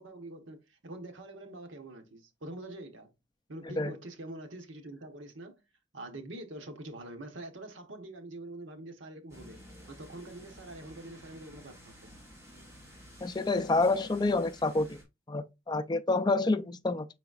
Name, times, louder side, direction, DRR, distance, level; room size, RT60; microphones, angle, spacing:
voice 1, 0.0-3.1 3.5-5.6 5.9-9.6 9.9-12.1, right 1 dB, 80° right, 1.1 m, -45 dB
sound 1, 9.3-15.0, equal, 15° right, 2.3 m, -53 dB
voice 2, 13.2-15.0 15.3-17.1, left 3 dB, 20° left, 0.4 m, -28 dB
5.5 x 3.9 x 2.4 m
head